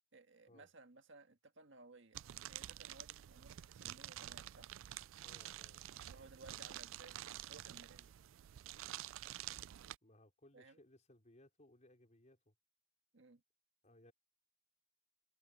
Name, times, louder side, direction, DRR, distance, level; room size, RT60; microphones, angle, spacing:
voice 1, 0.1-2.2 2.5-4.7 6.1-8.1 10.5-10.8 13.1-13.4, right 3 dB, 65° right, 1.8 m, -60 dB
sound 1, 2.1-10.0, right 13 dB, 85° right, 0.4 m, -49 dB
voice 2, 5.2-5.8 6.2-6.4 10.0-12.5 13.8-14.1, left 1 dB, 40° left, 4.7 m, -65 dB
head